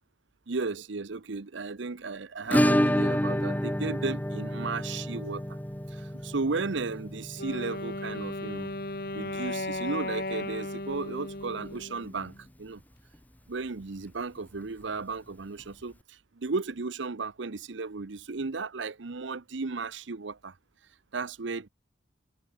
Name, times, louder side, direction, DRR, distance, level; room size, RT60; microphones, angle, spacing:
voice 1, 0.5-5.4 5.9-8.7 9.1-12.3 12.6-12.8 13.5-20.5 21.1-21.7, right 4 dB, 70° right, 0.8 m, -34 dB
Acoustic guitar / Strum, 2.5-11.1 11.4-11.5 11.8-11.9 12.2-12.3 14.4-14.5 15.6-15.7, equal, 10° left, 1.6 m, -30 dB
Wind instrument woodwind instrument, 7.4-12.4, left 2 dB, 50° left, 2.6 m, -36 dB
head